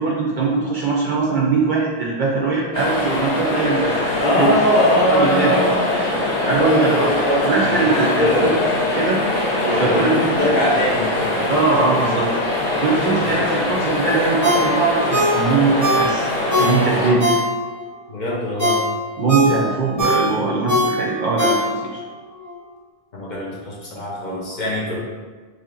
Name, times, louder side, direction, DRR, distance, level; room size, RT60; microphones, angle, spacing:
voice 1, 0.0-4.0 4.3-4.5 5.0-5.6 6.5-7.1 7.4-8.5 9.0-9.2 9.8-10.4 11.5-12.3 12.8-16.3 16.6-17.4 19.2-22.0, right 4 dB, 60° right, -4 dB, 0.5 m, -21 dB
sound 1, 2.7-17.1, left 1 dB, 80° left, 1.1 m, -22 dB
voice 2, 4.2-6.0 6.6-8.6 9.6-11.5 13.1-13.4 18.1-18.8 23.1-25.0, equal, 50° left, -4 dB, 0.8 m, -21 dB
Ringtone, 14.4-17.9 18.3-22.0 22.4-22.5, equal, 20° right, 0.7 m, -21 dB
3.2 x 2.7 x 3.7 m, 1.4 s
omnidirectional pair, 1.1 m